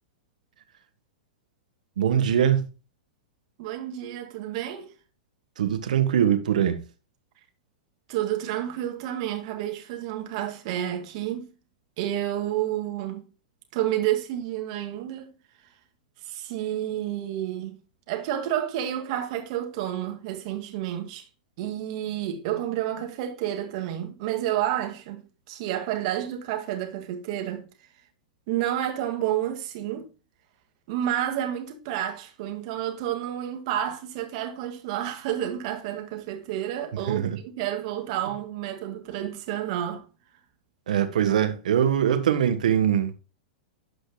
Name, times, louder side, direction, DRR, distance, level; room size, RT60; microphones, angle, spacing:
voice 1, 2.0-2.6 5.6-6.8 37.1-37.4 40.9-43.1, right 9 dB, 70° right, 1.3 m, -22 dB
voice 2, 3.6-4.9 8.1-11.5 12.0-13.2 13.7-15.3 16.3-17.8 18.1-21.3 21.6-27.7 28.5-30.1 30.9-40.1, right 12 dB, 50° right, 2.0 m, -30 dB
12.0 x 5.2 x 2.3 m
hypercardioid pair, 105°, 4 cm